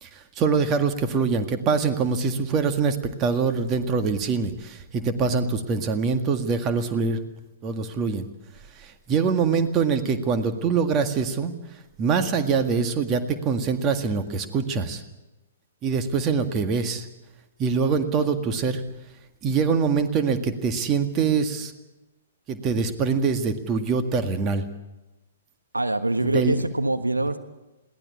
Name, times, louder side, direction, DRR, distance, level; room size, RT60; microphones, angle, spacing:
voice 1, 0.0-7.2 7.6-8.3 8.8-11.5 12.0-15.0 15.8-17.1 17.6-18.8 19.4-21.7 22.5-24.6 26.2-26.5, right 5 dB, 25° right, 7 dB, 1.9 m, -24 dB
voice 2, 25.7-27.4, right 2 dB, 85° right, 8 dB, 1.4 m, -24 dB
22.0 x 18.0 x 8.5 m, 1.1 s
figure-of-eight pair, 115°, 0 cm